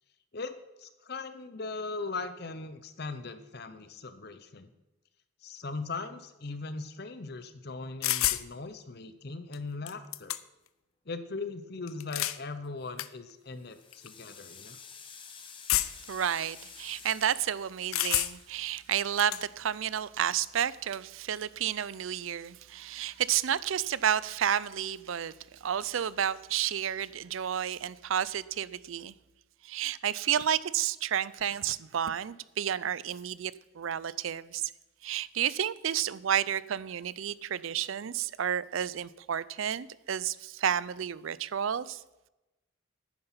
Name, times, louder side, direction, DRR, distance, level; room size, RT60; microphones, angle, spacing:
voice 1, 0.3-4.7 5.4-10.4 11.1-14.8, left 3 dB, 50° left, 0.8 m, -39 dB
sound 1, 8.0-8.5 9.5-9.6 9.9-10.7 11.9-12.4 13.0-13.1 13.9-14.1 15.7-16.1 17.9-18.5 18.9-19.4, left 14 dB, 90° left, 0.5 m, -29 dB
sound 2, 12.6-13.0 13.5-19.8, left 6 dB, 25° left, 1.0 m, -51 dB
voice 2, 15.7-29.1 29.6-34.7 35.0-42.0, right 9 dB, 75° right, 0.4 m, -31 dB
10.5 x 9.8 x 5.7 m
head